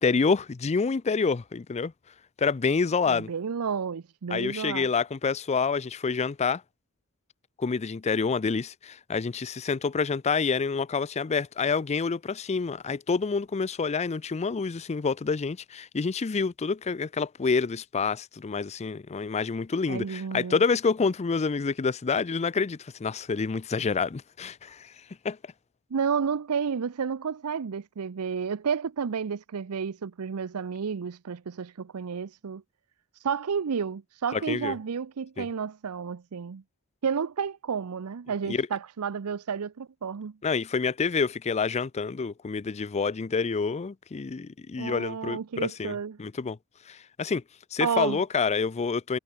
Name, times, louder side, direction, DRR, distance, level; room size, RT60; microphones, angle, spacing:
voice 1, 0.0-1.9 2.4-3.3 4.3-6.6 7.6-24.9 25.2-25.4 34.3-34.7 35.4-35.5 38.5-38.7 40.4-46.6 46.9-47.4 47.7-49.2, left 5 dB, 30° left, 0.4 m, -28 dB
voice 2, 3.1-4.9 19.9-20.6 25.9-32.6 33.1-36.6 37.0-40.3 44.8-46.2 47.8-48.2, right 6 dB, 75° right, 0.5 m, -31 dB
head